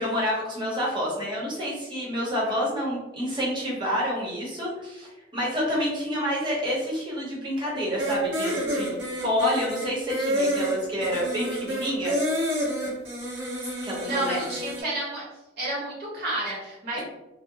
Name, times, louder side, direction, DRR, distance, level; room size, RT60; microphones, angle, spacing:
voice 1, 0.0-12.1 13.8-14.4, equal, 25° right, -5 dB, 0.9 m, -28 dB
sound 1, 8.0-14.8, equal, 80° right, 0.9 m, -29 dB
voice 2, 14.0-15.2 15.6-17.0, right 1 dB, 55° right, -6 dB, 1.1 m, -31 dB
2.6 x 2.0 x 2.8 m, 0.99 s
head